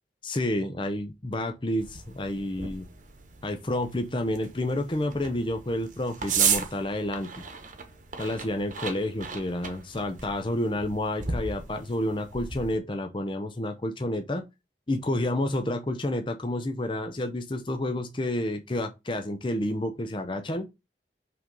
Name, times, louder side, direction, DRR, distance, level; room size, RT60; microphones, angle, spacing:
voice 1, 0.2-1.9 2.2-2.9 3.4-7.4 8.2-14.4 14.9-20.7, left 1 dB, 25° left, 0.6 m, -29 dB
sound 1, 1.8-12.8, right 6 dB, 45° right, 1.1 m, -35 dB
5.7 x 3.8 x 5.3 m
head